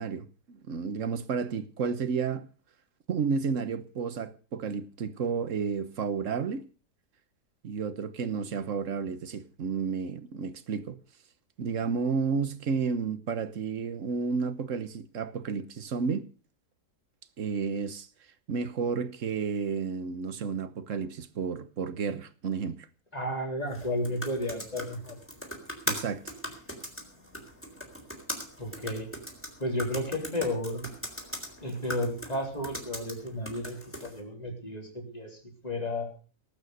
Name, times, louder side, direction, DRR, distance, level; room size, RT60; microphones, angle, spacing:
voice 1, 0.0-2.5 3.1-6.6 7.6-11.0 11.6-16.2 17.4-18.1 18.5-22.9 25.9-26.3, right 5 dB, 55° right, 1.4 m, -31 dB
voice 2, 23.1-25.2 28.6-29.1 29.6-30.9 31.6-36.1, left 1 dB, 25° left, 3.8 m, -33 dB
sound 1, 23.6-34.2, equal, 5° left, 4.0 m, -40 dB
19.0 x 8.9 x 6.6 m
omnidirectional pair, 1.7 m